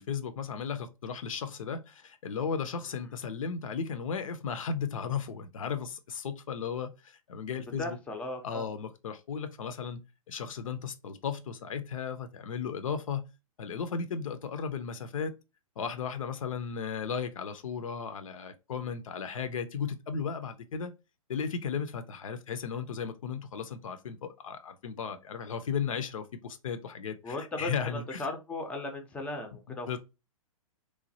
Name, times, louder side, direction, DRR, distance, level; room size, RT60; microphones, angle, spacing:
voice 1, 0.0-8.0 8.4-10.0 10.3-13.3 13.6-15.3 15.8-20.9 21.3-28.2 29.9-30.0, left 6 dB, 65° left, 0.5 m, -35 dB
voice 2, 7.8-8.7 16.6-16.8 27.2-30.0, left 2 dB, 5° left, 0.4 m, -37 dB
3.1 x 2.2 x 2.6 m
figure-of-eight pair, 115°, 18 cm